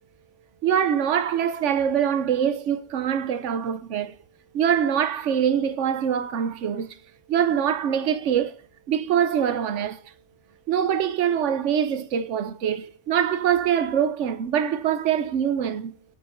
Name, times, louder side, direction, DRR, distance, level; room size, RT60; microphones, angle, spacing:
voice 1, 0.6-4.2 4.5-7.0 7.3-8.6 8.9-10.0 10.7-16.0, right 8 dB, 80° right, 1.1 m, -24 dB
11.5 x 8.3 x 5.1 m
omnidirectional pair, 1.2 m